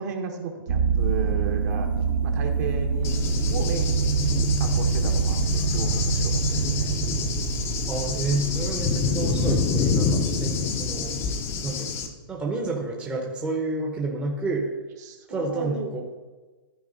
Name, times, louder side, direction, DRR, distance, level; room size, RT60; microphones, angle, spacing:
voice 1, 0.0-1.9 2.2-3.2 3.5-4.2 4.6-7.0 15.0-16.0, right 5 dB, 45° right, 4 dB, 1.4 m, -34 dB
sound 1, 0.7-12.1, right 4 dB, 60° right, 1.5 m, -26 dB
Cricket / Thunder, 3.0-12.1, left 5 dB, 20° left, 0.7 m, -28 dB
voice 2, 7.9-11.2 11.6-14.7 15.3-16.0, right 2 dB, 10° right, -2 dB, 0.9 m, -30 dB
13.0 x 4.7 x 4.0 m, 1.3 s
hypercardioid pair, 155°, 12 cm